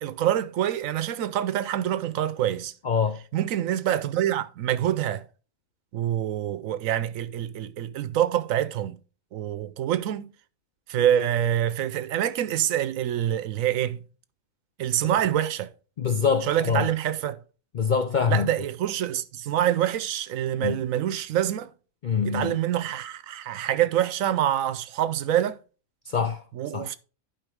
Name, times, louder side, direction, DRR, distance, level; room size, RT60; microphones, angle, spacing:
voice 1, 0.0-2.7 3.3-5.3 5.9-9.0 9.3-10.3 10.9-14.0 14.8-15.7 16.4-17.4 18.3-21.7 22.2-25.6 26.5-26.9, right 11 dB, 75° right, 1.0 m, -26 dB
voice 2, 2.8-3.2 16.0-16.9 17.7-18.5 20.6-20.8 22.0-22.6 26.1-26.4 26.7-26.9, left 6 dB, 60° left, 0.5 m, -24 dB
11.0 x 5.2 x 3.5 m
omnidirectional pair, 1.4 m